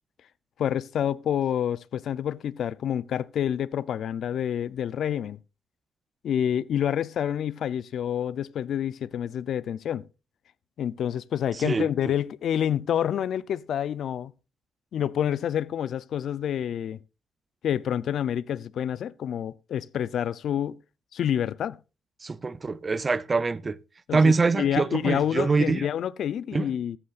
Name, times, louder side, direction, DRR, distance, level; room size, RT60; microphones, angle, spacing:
voice 1, 0.6-5.4 6.2-10.0 10.8-14.3 14.9-17.0 17.6-20.8 21.1-21.8 24.1-27.0, left 9 dB, 65° left, 0.6 m, -28 dB
voice 2, 22.2-23.8 24.1-25.9 26.5-26.7, right 4 dB, 30° right, 0.6 m, -24 dB
14.5 x 13.0 x 2.5 m
cardioid pair, 90°, 0 cm